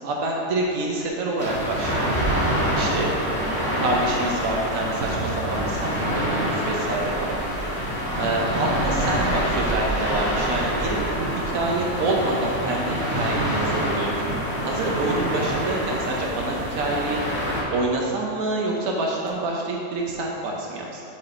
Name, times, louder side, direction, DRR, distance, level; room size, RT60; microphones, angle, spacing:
voice 1, 0.0-2.0 2.7-3.1 3.8-7.4 8.2-17.2 17.7-21.0, right 2 dB, 80° right, -1 dB, 1.2 m, -27 dB
sound 1, 1.4-17.6, equal, 10° left, 1.5 m, -26 dB
6.2 x 4.8 x 4.3 m, 2.5 s
omnidirectional pair, 1.4 m